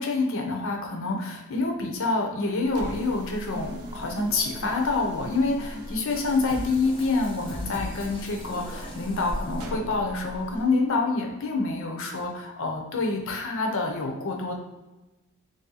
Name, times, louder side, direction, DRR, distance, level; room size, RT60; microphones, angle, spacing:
voice 1, 0.0-14.5, left 3 dB, 60° left, 2 dB, 0.7 m, -27 dB
sound 1, 2.6-10.7, equal, 90° right, 0.6 m, -40 dB
sound 2, 3.5-10.8, right 1 dB, 25° right, 0.3 m, -44 dB
sound 3, 6.1-10.3, left 1 dB, 20° left, 0.6 m, -41 dB
3.2 x 2.7 x 3.9 m, 1.1 s
head